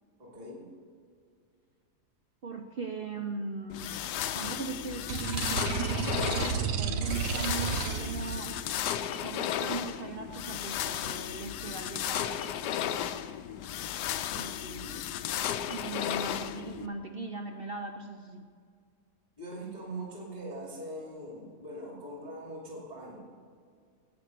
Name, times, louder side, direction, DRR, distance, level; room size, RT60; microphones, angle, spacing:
voice 1, 0.2-0.7 19.4-23.3, right 1 dB, 25° right, -3 dB, 2.6 m, -42 dB
voice 2, 2.4-4.0 4.4-8.7 9.2-13.3 14.3-15.0 15.7-18.5, right 3 dB, 60° right, 4 dB, 0.6 m, -39 dB
sound 1, 3.7-16.9, left 10 dB, 85° left, 1.2 m, -34 dB
sound 2, 5.1-8.5, right 7 dB, 90° right, 1.4 m, -32 dB
10.5 x 8.7 x 6.6 m, 2.1 s
omnidirectional pair, 1.8 m